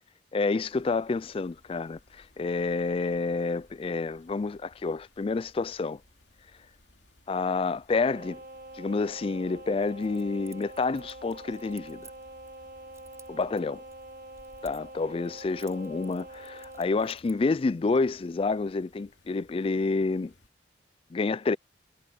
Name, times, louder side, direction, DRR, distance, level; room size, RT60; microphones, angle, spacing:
voice 1, 0.3-6.0 7.3-8.4 8.7-12.1 13.3-13.8 14.6-20.3 21.1-21.6, left 3 dB, 30° left, 0.3 m, -29 dB
sound 1, 0.6-20.5, left 1 dB, 80° left, 2.7 m, -60 dB
sound 2, 7.9-17.2, right 1 dB, 55° right, 1.9 m, -45 dB
Keys jangling, 9.8-12.6 12.9-15.0 15.3-17.5, right 5 dB, 15° right, 4.0 m, -55 dB
head